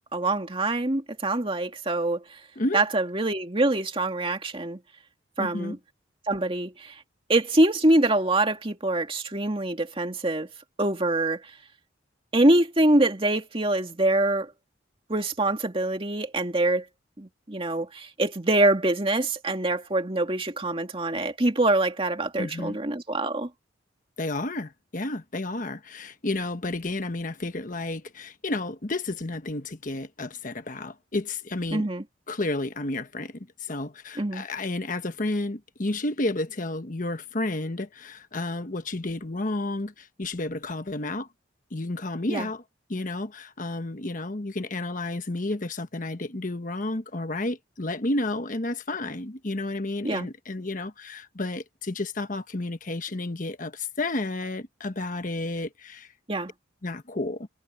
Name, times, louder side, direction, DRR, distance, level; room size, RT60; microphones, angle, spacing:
voice 1, 0.1-2.4 2.7-4.8 5.4-5.8 6.3-7.0 7.3-10.5 10.8-11.5 12.3-14.5 15.1-16.8 17.2-23.5 31.7-32.0 34.2-34.4 42.3-42.5 50.0-50.3 56.3-56.5, right 2 dB, 30° right, 2.3 m, -24 dB
voice 2, 5.4-5.8 22.4-22.8 24.2-31.9 32.3-41.3 41.7-42.6 42.9-56.1 56.8-57.5, left 2 dB, 45° left, 1.2 m, -31 dB
head